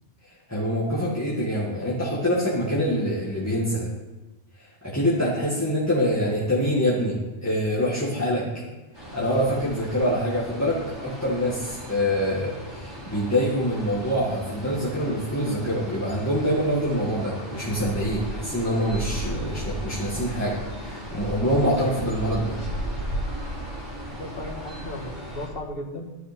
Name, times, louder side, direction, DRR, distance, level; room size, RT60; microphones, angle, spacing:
voice 1, 0.5-3.9 4.8-8.4 9.1-22.6, equal, 15° left, -6 dB, 2.0 m, -25 dB
voice 2, 7.8-8.5 24.1-26.1, left 1 dB, 50° left, 0 dB, 2.1 m, -36 dB
sound 1, 8.9-25.5, equal, 20° right, 3.9 m, -35 dB
12.5 x 9.1 x 5.3 m, 1.1 s
omnidirectional pair, 1.2 m